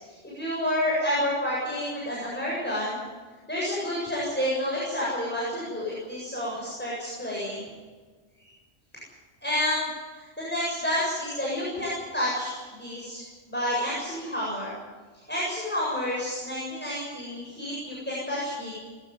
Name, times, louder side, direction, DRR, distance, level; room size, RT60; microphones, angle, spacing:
voice 1, 0.2-3.0 3.5-7.7 9.4-9.9 10.1-13.2 13.5-14.7 15.1-18.7, left 1 dB, 10° left, -6 dB, 7.8 m, -29 dB
22.5 x 15.5 x 9.5 m, 1.4 s
omnidirectional pair, 1.2 m